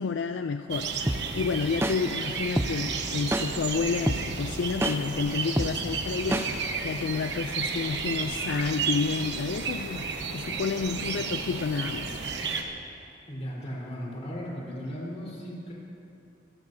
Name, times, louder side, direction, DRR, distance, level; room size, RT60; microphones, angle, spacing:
voice 1, 0.0-12.2 12.5-12.7, left 5 dB, 65° left, 8 dB, 0.3 m, -30 dB
sound 1, 0.7-12.6, right 5 dB, 60° right, 1.1 m, -32 dB
sound 2, 1.1-1.2 1.8-2.0 2.6-2.7 3.3-3.5 4.1-4.2 4.8-5.0 5.6-5.7 6.3-6.5, right 1 dB, 10° right, 0.6 m, -25 dB
voice 2, 13.3-15.7, equal, 35° left, -5 dB, 4.0 m, -36 dB
29.0 x 14.0 x 2.7 m, 2.7 s
head